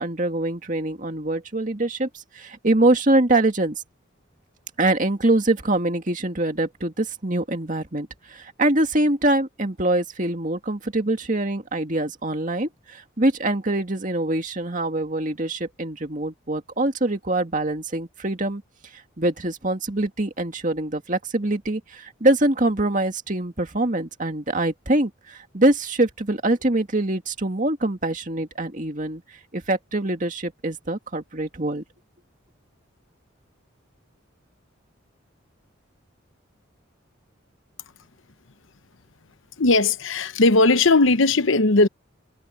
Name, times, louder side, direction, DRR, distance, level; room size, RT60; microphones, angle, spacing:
voice 1, 0.0-3.8 4.8-18.6 18.9-29.2 29.5-31.8, right 2 dB, 40° right, 2.1 m, -24 dB
voice 2, 39.6-41.9, left 3 dB, 75° left, 0.9 m, -18 dB
head